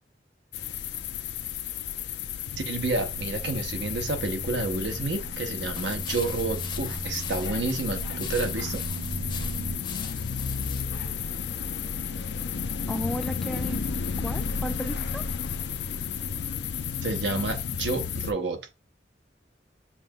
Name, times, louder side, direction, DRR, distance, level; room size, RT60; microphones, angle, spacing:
sound 1, 0.5-18.3, left 6 dB, 70° left, 0.4 m, -33 dB
voice 1, 2.6-8.8 17.0-18.6, right 3 dB, 80° right, 0.8 m, -30 dB
sound 2, 2.8-9.8, right 1 dB, 50° right, 1.0 m, -37 dB
sound 3, 5.7-10.9, left 6 dB, 25° left, 0.7 m, -42 dB
voice 2, 12.9-13.9 14.2-15.2, equal, ahead, 0.3 m, -34 dB
6.9 x 2.8 x 2.3 m
head